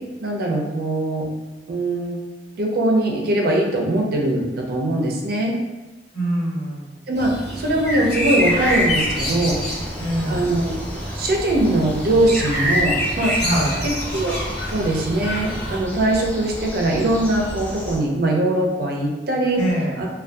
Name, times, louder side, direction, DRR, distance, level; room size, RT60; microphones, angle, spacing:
voice 1, 0.2-1.3 1.7-2.2 2.6-5.5 7.1-9.6 10.3-10.8 11.2-13.3 13.8-14.4 14.7-19.6 20.0-20.1, right 1 dB, 55° right, 0 dB, 0.4 m, -21 dB
voice 2, 6.1-6.8 10.0-10.6 13.4-13.8 19.5-19.9, right 1 dB, 85° left, -8 dB, 1.2 m, -24 dB
sound 1, 7.1-15.8, equal, 60° left, 0.9 m, -26 dB
sound 2, 8.4-18.0, equal, 10° left, 0.3 m, -33 dB
2.5 x 2.2 x 2.2 m, 1.1 s
head